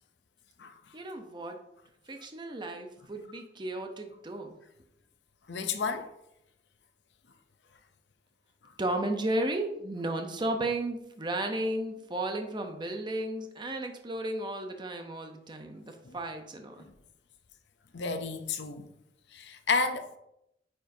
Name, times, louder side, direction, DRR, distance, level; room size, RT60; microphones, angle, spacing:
voice 1, 0.9-1.6 2.1-4.6 8.8-16.9, right 1 dB, 25° right, 0.7 m, -34 dB
voice 2, 5.5-6.1 16.0-16.2 16.8-16.9 17.9-18.9 19.3-20.2, left 4 dB, 75° left, 0.7 m, -31 dB
9.3 x 4.5 x 2.7 m
head